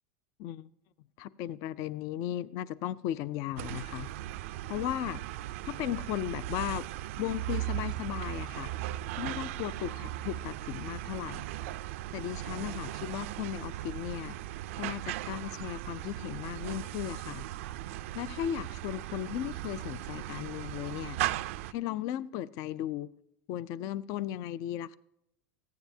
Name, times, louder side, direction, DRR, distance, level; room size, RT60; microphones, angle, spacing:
voice 1, 1.2-4.1 4.7-5.2 5.6-6.9 7.2-8.7 9.2-11.5 12.1-14.4 14.8-17.4 18.1-21.2 21.7-23.1 23.5-25.0, left 12 dB, 55° left, 0.4 m, -36 dB
sound 1, 3.6-21.7, right 15 dB, 80° right, 0.4 m, -38 dB
15.0 x 9.2 x 2.7 m
supercardioid pair, 120°, 7 cm